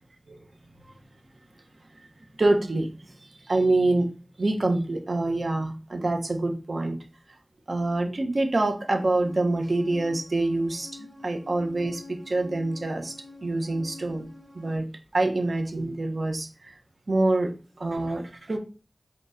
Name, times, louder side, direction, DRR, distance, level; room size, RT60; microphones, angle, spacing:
voice 1, 2.4-2.9 3.5-4.1 4.4-7.0 7.7-10.9 11.2-13.2 13.4-14.3 14.5-14.9 15.1-16.5 17.1-17.5 17.8-18.6, right 2 dB, 70° right, 4 dB, 0.9 m, -25 dB
sound 1, 8.9-14.8, left 3 dB, 30° right, 1.0 m, -47 dB
4.5 x 3.7 x 2.6 m, 0.35 s
wide cardioid pair, 50°, 0 cm